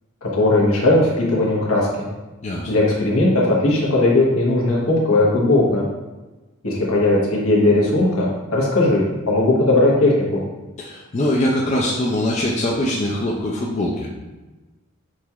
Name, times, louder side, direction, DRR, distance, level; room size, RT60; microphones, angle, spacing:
voice 1, 0.2-2.1 2.7-5.8 6.6-10.4, left 2 dB, 75° left, -4 dB, 1.1 m, -18 dB
voice 2, 10.8-14.1, left 1 dB, 30° left, -3 dB, 0.4 m, -22 dB
6.1 x 2.8 x 2.3 m, 1.1 s
head